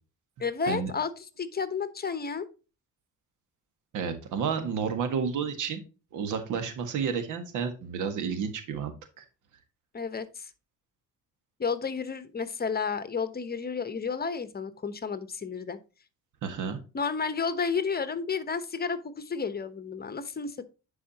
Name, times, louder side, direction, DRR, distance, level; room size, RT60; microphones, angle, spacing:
voice 1, 0.4-2.5 9.9-10.5 11.6-15.8 16.9-20.6, left 5 dB, 30° left, 13 dB, 1.0 m, -31 dB
voice 2, 3.9-5.8 6.1-8.9 9.2-9.3 16.4-16.8, right 6 dB, 85° right, 9 dB, 1.7 m, -31 dB
10.0 x 4.9 x 2.9 m, 0.31 s
cardioid pair, 90°, 30 cm